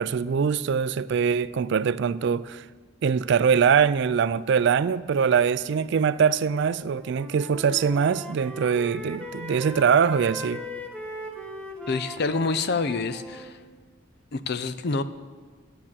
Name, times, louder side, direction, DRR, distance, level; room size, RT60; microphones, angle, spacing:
voice 1, 0.0-2.6 3.0-10.6, right 6 dB, 60° right, 0.3 m, -23 dB
Wind instrument woodwind instrument, 6.8-13.5, equal, 5° left, 1.1 m, -39 dB
voice 2, 11.9-13.6 14.3-15.0, left 4 dB, 55° left, 0.6 m, -27 dB
9.9 x 8.0 x 7.3 m
head